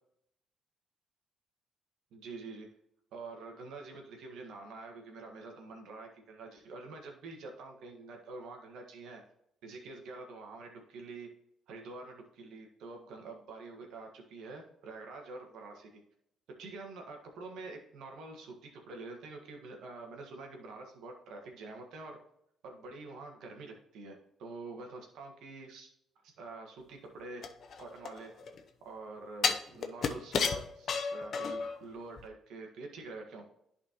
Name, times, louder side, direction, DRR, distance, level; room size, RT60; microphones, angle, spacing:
voice 1, 2.1-2.7 3.1-9.2 9.6-11.3 11.7-16.0 16.6-22.2 22.6-25.9 26.2-27.4 27.8-28.3 28.8-33.4, right 3 dB, 75° right, 2 dB, 1.5 m, -46 dB
sound 1, 27.4-28.6 29.4-31.8 32.2-32.3, left 5 dB, 60° left, 0.8 m, -32 dB
11.0 x 4.3 x 2.9 m, 0.76 s
supercardioid pair, 60°, 0 cm